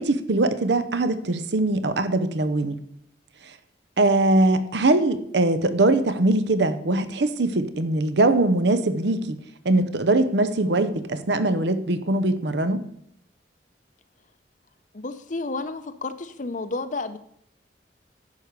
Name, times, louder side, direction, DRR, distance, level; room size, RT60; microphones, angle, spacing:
voice 1, 0.0-2.7 4.0-9.4 9.6-12.8, right 2 dB, 75° right, 12 dB, 0.8 m, -22 dB
voice 2, 14.9-17.2, left 3 dB, 45° left, 11 dB, 0.6 m, -31 dB
10.5 x 4.8 x 6.7 m, 0.71 s
head